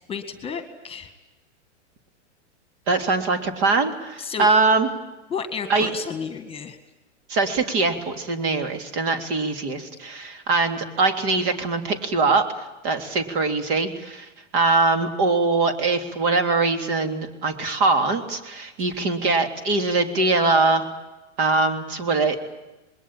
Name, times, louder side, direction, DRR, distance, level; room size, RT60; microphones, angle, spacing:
voice 1, 0.1-1.1 4.2-4.5 5.3-6.8, left 6 dB, 15° left, 8 dB, 1.9 m, -32 dB
voice 2, 2.9-4.9 5.7-5.9 7.3-20.9 21.4-22.4, right 3 dB, 50° right, 7 dB, 3.3 m, -22 dB
25.5 x 21.0 x 9.0 m, 1.1 s
hypercardioid pair, 130°, 36 cm